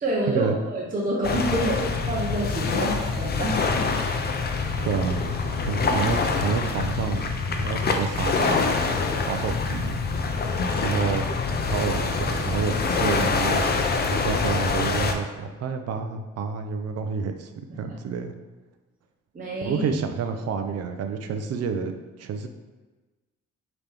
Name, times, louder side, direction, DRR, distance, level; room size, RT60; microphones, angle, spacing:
voice 1, 0.0-3.6 19.3-19.8, right 1 dB, 30° right, -4 dB, 0.8 m, -27 dB
sound 1, 1.2-15.1, left 4 dB, 35° left, 0.5 m, -25 dB
voice 2, 4.8-8.6 9.3-10.0 10.8-11.2 11.6-13.8 14.1-18.3 19.6-22.5, right 6 dB, 55° right, 7 dB, 0.5 m, -29 dB
5.2 x 3.0 x 3.4 m, 1.2 s
cardioid pair, 90°, 30 cm